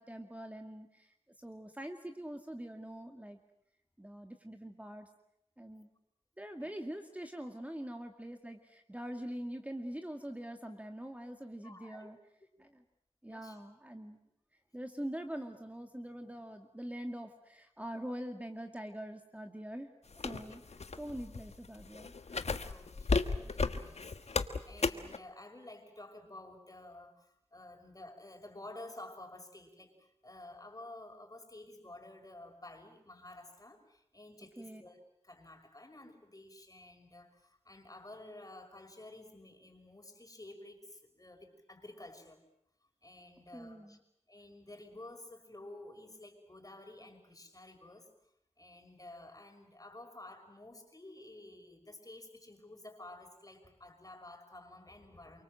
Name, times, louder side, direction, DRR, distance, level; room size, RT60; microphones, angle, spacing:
voice 1, 0.0-3.4 4.0-5.1 5.6-5.9 6.4-12.2 12.6-12.8 13.2-14.2 14.7-19.9 20.1-20.6 21.0-22.1 34.6-34.8 43.5-44.0, right 1 dB, 15° right, 5 dB, 2.2 m, -44 dB
voice 2, 11.6-12.1 12.6-12.7 13.3-13.6 20.4-20.6 22.6-35.0 35.2-42.4 43.0-44.0 44.3-48.1 48.6-55.4, left 2 dB, 30° left, 5 dB, 5.7 m, -52 dB
sound 1, 20.1-25.2, left 4 dB, 70° left, 1.4 m, -34 dB
29.0 x 24.0 x 7.8 m, 0.76 s
wide cardioid pair, 50°, 11 cm